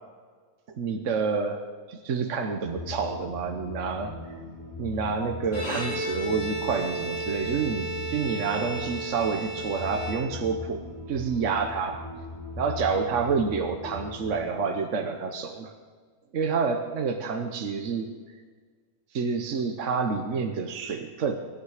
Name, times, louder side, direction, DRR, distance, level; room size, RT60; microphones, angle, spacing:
voice 1, 0.7-4.1 4.8-10.8 11.1-12.0 12.6-15.7 16.3-18.1 19.1-21.4, right 5 dB, 60° right, 5 dB, 1.3 m, -28 dB
sound 1, 2.6-14.5, left 2 dB, 40° left, 4.2 m, -40 dB
Bowed string instrument, 5.4-10.7, right 2 dB, 80° left, 5.0 m, -34 dB
23.5 x 10.5 x 4.9 m, 1.6 s
omnidirectional pair, 1.5 m